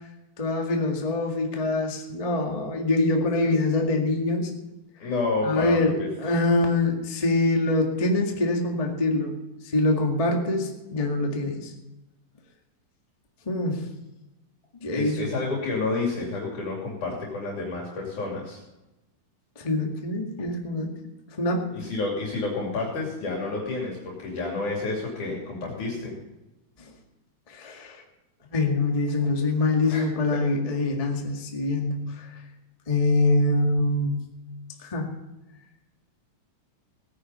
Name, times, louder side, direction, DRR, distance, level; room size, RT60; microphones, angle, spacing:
voice 1, 0.4-4.5 5.4-9.4 9.7-11.7 13.4-13.9 14.8-15.3 19.5-20.9 21.4-21.7 26.8-26.9 27.5-28.0 28.5-32.4 32.9-34.2 34.8-35.1, left 2 dB, 15° left, 1 dB, 1.2 m, -24 dB
voice 2, 5.0-5.9 14.9-18.6 21.7-26.2 29.9-30.4, left 3 dB, 65° left, -2 dB, 4.2 m, -30 dB
17.5 x 10.0 x 5.5 m, 0.98 s
omnidirectional pair, 3.8 m